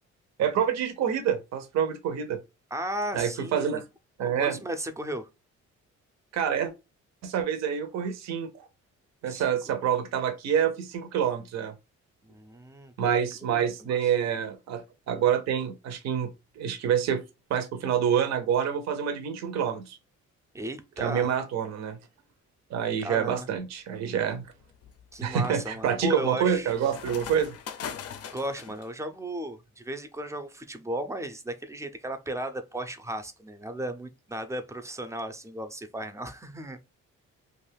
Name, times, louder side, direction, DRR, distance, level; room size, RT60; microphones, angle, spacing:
voice 1, 0.4-2.4 3.1-3.9 4.2-4.6 6.3-6.7 7.2-8.7 9.2-11.7 13.0-16.3 16.6-17.2 17.5-20.0 21.0-22.0 22.7-24.5 25.2-27.6, right 8 dB, 60° right, 0.6 m, -27 dB
voice 2, 2.7-3.8 4.2-5.3 9.3-9.4 12.2-13.1 13.4-14.0 20.5-21.3 23.0-23.5 25.1-26.7 28.3-36.8, right 1 dB, 10° right, 0.5 m, -35 dB
sound 1, 23.3-23.7 24.2-28.9, left 7 dB, 55° left, 0.4 m, -42 dB
2.5 x 2.3 x 3.3 m
cardioid pair, 90°, 30 cm